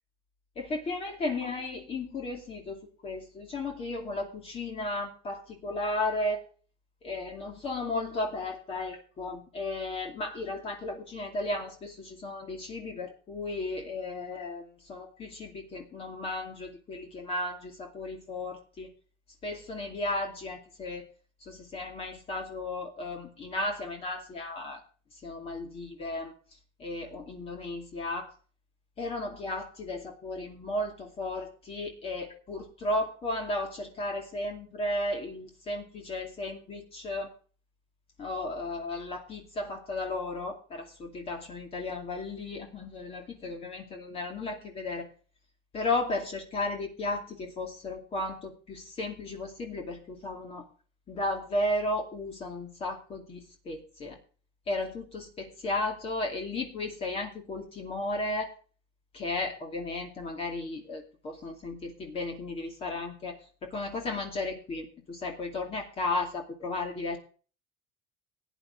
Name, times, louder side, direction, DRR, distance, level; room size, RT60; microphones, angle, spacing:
voice 1, 0.6-6.4 7.0-18.9 19.4-21.0 21.4-24.8 25.2-26.3 26.8-28.3 29.0-37.3 38.2-45.1 45.7-50.7 51.1-54.2 54.7-58.5 59.1-67.2, left 2 dB, 35° left, 2 dB, 2.5 m, -34 dB
17.0 x 9.8 x 3.8 m, 0.39 s
cardioid pair, 135°, 18 cm